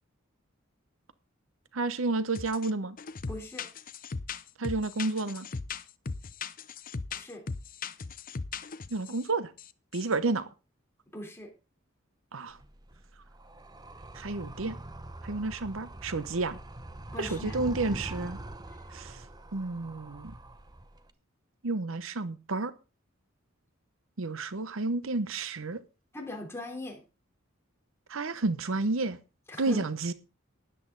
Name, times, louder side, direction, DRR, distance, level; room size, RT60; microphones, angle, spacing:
voice 1, 1.7-3.0 4.6-5.5 8.9-9.5 9.9-10.5 12.3-12.6 14.1-14.7 15.2-16.6 17.2-18.4 18.9-19.2 19.5-20.3 21.6-22.7 24.2-25.8 28.1-29.2 29.6-30.1, right 3 dB, 65° right, 0.8 m, -31 dB
sound 1, 2.3-2.7 3.0-9.2 9.6-9.7 9.9-10.1, left 4 dB, 45° left, 0.7 m, -38 dB
voice 2, 3.3-3.7 7.1-7.4 11.1-11.5 17.1-17.6 18.7-18.8 26.1-27.0 29.5-29.9, left 1 dB, 10° left, 3.5 m, -40 dB
Animal, 12.5-21.1, right 1 dB, 20° right, 0.8 m, -43 dB
13.0 x 10.5 x 3.9 m
head